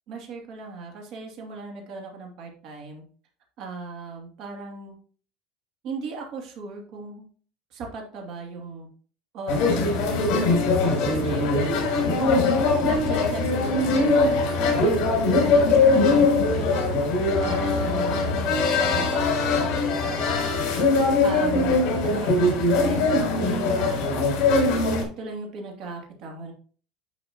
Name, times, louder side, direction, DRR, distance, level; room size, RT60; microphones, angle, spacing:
voice 1, 0.1-3.0 3.6-4.9 5.8-7.3 7.7-8.9 9.3-10.5 11.1-11.5 12.9-16.8 17.4-24.0 25.2-26.5, right 3 dB, 50° right, 1 dB, 2.6 m, -37 dB
sound 1, 9.5-25.0, left 3 dB, 55° left, 3.8 m, -21 dB
10.0 x 5.8 x 2.9 m, 0.43 s
cardioid pair, 155°, 0 cm